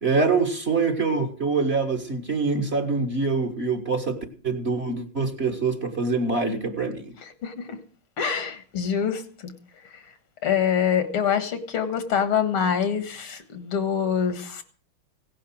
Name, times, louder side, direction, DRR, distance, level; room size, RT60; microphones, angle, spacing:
voice 1, 0.0-7.1, right 4 dB, 30° right, 1.7 m, -25 dB
voice 2, 8.2-9.5 10.4-14.6, left 7 dB, 80° left, 2.5 m, -25 dB
17.0 x 10.5 x 6.3 m
omnidirectional pair, 2.3 m